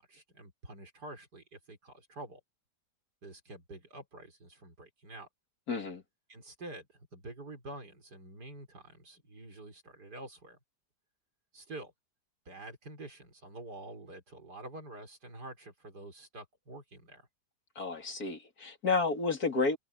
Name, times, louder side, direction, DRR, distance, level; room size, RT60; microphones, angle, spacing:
voice 1, 0.0-2.4 3.2-5.3 6.3-6.9 7.1-10.6 11.5-11.9 12.5-17.3, right 2 dB, 75° right, 5.5 m, -47 dB
voice 2, 5.7-6.0 17.8-19.8, left 4 dB, 65° left, 3.1 m, -31 dB
omnidirectional pair, 1.8 m